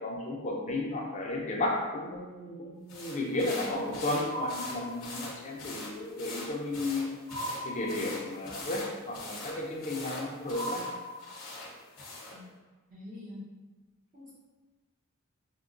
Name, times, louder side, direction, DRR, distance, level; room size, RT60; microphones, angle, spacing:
voice 1, 0.0-7.1 7.6-10.8, left 2 dB, 35° left, -1 dB, 0.5 m, -33 dB
sound 1, 2.9-12.4, left 2 dB, 60° left, 0.8 m, -43 dB
sound 2, 4.3-5.5 7.3-8.5 10.5-11.8, equal, 65° right, 0.6 m, -39 dB
voice 2, 12.9-13.5 14.1-14.3, left 2 dB, 40° right, -10 dB, 0.8 m, -45 dB
4.4 x 2.2 x 2.5 m, 1.3 s
head